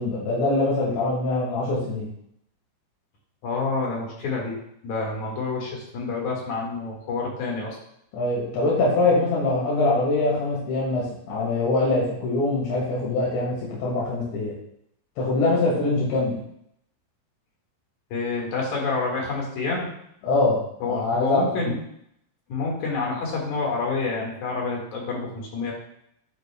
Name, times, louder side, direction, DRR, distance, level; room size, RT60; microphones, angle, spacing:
voice 1, 0.0-2.1 8.1-14.6 15.2-16.4 20.2-21.7, left 2 dB, 75° left, -6 dB, 4.3 m, -23 dB
voice 2, 3.4-4.5 4.8-7.8 18.1-19.9 20.8-21.8 22.5-25.7, left 3 dB, 50° left, -2 dB, 2.6 m, -28 dB
10.5 x 8.0 x 2.3 m, 0.73 s
omnidirectional pair, 5.2 m